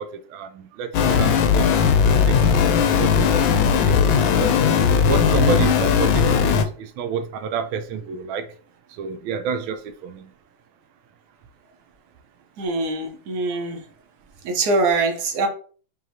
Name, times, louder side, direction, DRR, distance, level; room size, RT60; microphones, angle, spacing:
voice 1, 0.0-1.9 2.2-3.4 4.0-4.5 5.1-8.4 9.0-10.2, right 6 dB, 90° right, 1.4 m, -29 dB
sound 1, 0.9-6.7, left 6 dB, 85° left, 1.4 m, -18 dB
voice 2, 12.6-13.8 14.4-15.5, right 3 dB, 60° right, 1.3 m, -23 dB
5.6 x 2.8 x 2.7 m
omnidirectional pair, 2.2 m